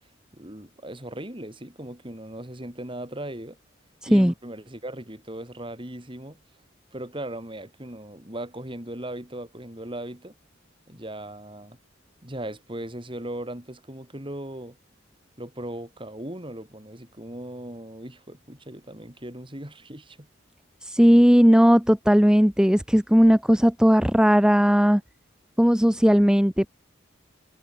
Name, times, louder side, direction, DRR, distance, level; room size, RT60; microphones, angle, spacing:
voice 1, 0.3-3.6 4.1-6.4 6.9-10.3 10.9-11.8 12.2-14.8 15.4-20.3, right 1 dB, 25° right, 5.0 m, -38 dB
voice 2, 20.8-25.0 25.6-26.7, equal, 5° right, 0.9 m, -17 dB
head